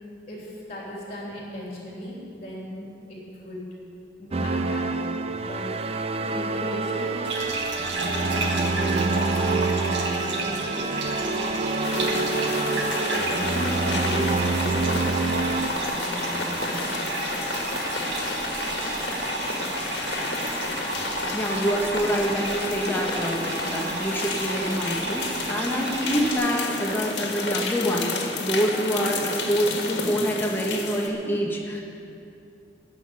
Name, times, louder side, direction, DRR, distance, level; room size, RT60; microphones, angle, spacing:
voice 1, 0.3-3.6 4.2-5.1 5.4-5.7 6.2-10.9 11.2-11.5 12.1-16.8, left 1 dB, 35° left, -4 dB, 3.1 m, -37 dB
sound 1, 4.3-15.7, right 3 dB, 35° right, 0.4 m, -27 dB
sound 2, 7.2-26.3, right 2 dB, 85° right, 1.7 m, -31 dB
sound 3, 11.8-31.1, left 3 dB, 75° left, 1.6 m, -31 dB
voice 2, 20.5-21.0 21.3-31.8, equal, 10° left, -1 dB, 1.5 m, -26 dB
14.5 x 5.9 x 9.8 m, 2.7 s
head